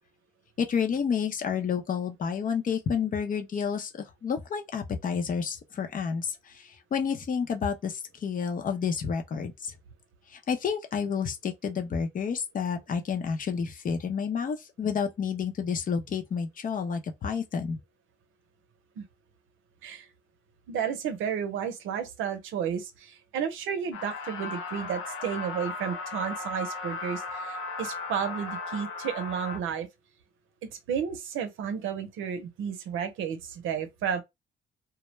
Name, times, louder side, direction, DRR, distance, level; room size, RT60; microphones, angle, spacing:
voice 1, 0.6-9.7 10.3-17.8, left 6 dB, 45° left, 0.6 m, -30 dB
voice 2, 20.7-29.9 30.9-34.2, right 8 dB, 85° right, 0.7 m, -32 dB
sound 1, 23.9-29.6, left 3 dB, 80° left, 0.7 m, -36 dB
2.3 x 2.1 x 3.0 m
cardioid pair, 90°, 20 cm